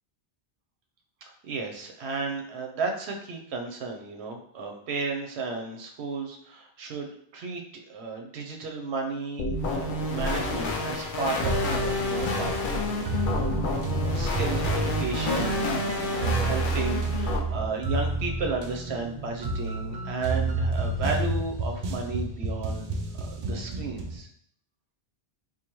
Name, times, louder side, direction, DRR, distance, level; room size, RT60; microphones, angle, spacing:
voice 1, 1.4-7.6 7.9-13.6 14.0-15.7 16.1-22.9 23.2-24.3, right 4 dB, 85° right, 2 dB, 0.9 m, -34 dB
sound 1, 9.4-17.4, left 2 dB, 60° left, 0.7 m, -29 dB
sound 2, 11.4-24.2, right 2 dB, 55° right, 0.4 m, -30 dB
3.8 x 2.6 x 3.0 m, 0.66 s
omnidirectional pair, 1.1 m